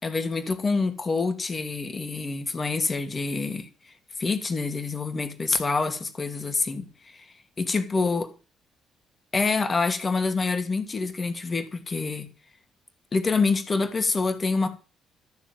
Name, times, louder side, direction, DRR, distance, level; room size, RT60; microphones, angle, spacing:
voice 1, 0.0-3.7 4.2-7.3 7.6-8.3 9.3-12.3 13.1-14.7, left 4 dB, 35° left, 2.5 m, -26 dB
13.0 x 7.3 x 7.6 m
figure-of-eight pair, 45°, 0 cm